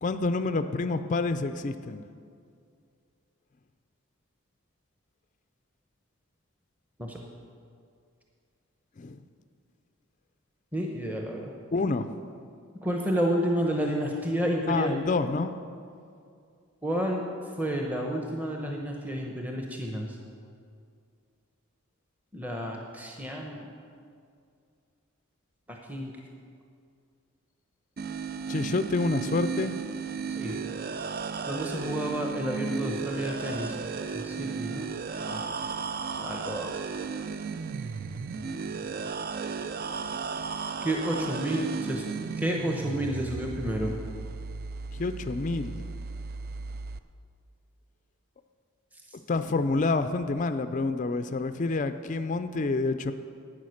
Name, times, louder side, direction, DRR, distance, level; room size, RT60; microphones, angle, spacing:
voice 1, 0.0-2.0 9.0-9.2 11.7-12.2 14.7-15.6 28.5-29.8 44.9-45.8 49.3-53.1, left 3 dB, 35° left, 10 dB, 0.4 m, -28 dB
voice 2, 10.7-11.5 12.8-15.0 16.8-17.2 17.6-20.2 22.3-23.7 25.7-26.1 30.4-30.6 31.5-33.8 34.2-34.9 35.3-35.5 36.2-36.7 40.8-42.0 42.4-43.9, equal, 5° right, 0 dB, 0.8 m, -30 dB
sound 1, 28.0-47.0, right 5 dB, 40° right, 0.4 m, -35 dB
11.5 x 8.9 x 6.4 m, 2.3 s
head